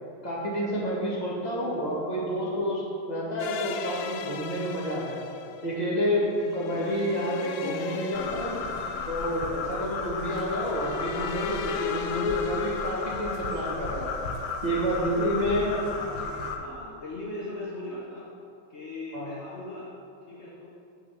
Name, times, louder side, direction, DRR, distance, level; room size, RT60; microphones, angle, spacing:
voice 1, 0.2-5.2 5.6-8.6 9.1-14.2 14.6-15.7 19.1-19.3, equal, 20° left, -6 dB, 2.0 m, -29 dB
sound 1, 3.4-14.5, left 8 dB, 85° left, 0.9 m, -38 dB
sound 2, 8.1-16.6, left 4 dB, 70° left, 1.4 m, -34 dB
voice 2, 15.0-18.3 18.7-19.9 20.3-20.7, left 1 dB, 50° left, -4 dB, 0.8 m, -38 dB
7.4 x 6.2 x 7.4 m, 2.7 s
omnidirectional pair, 2.3 m